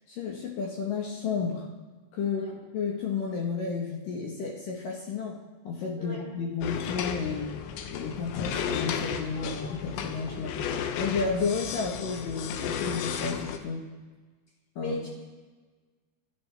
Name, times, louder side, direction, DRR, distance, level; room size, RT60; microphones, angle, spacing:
voice 1, 0.1-1.7 2.1-5.4 5.6-7.6 7.9-10.6 11.0-13.8 14.8-14.9, left 5 dB, 65° left, -1 dB, 2.2 m, -32 dB
sound 1, 6.6-13.6, left 8 dB, 85° left, 3.6 m, -33 dB
voice 2, 14.7-15.1, left 1 dB, 20° left, -4 dB, 4.4 m, -36 dB
26.0 x 13.0 x 3.4 m, 1.4 s
omnidirectional pair, 5.7 m